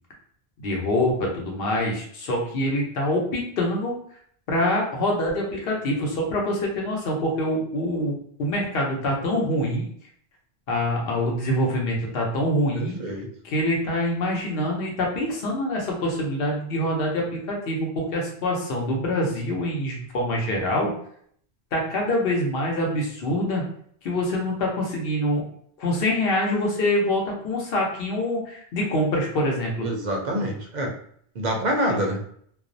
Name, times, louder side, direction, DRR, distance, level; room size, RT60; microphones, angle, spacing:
voice 1, 0.6-3.9 4.5-9.8 10.7-13.0 13.4-20.9 21.7-23.6 24.0-25.4 25.8-29.9, left 1 dB, 70° left, -1 dB, 0.9 m, -25 dB
voice 2, 12.7-13.3 29.8-30.9 31.3-32.2, equal, 55° right, 1 dB, 0.6 m, -26 dB
2.4 x 2.0 x 2.5 m, 0.63 s
omnidirectional pair, 1.0 m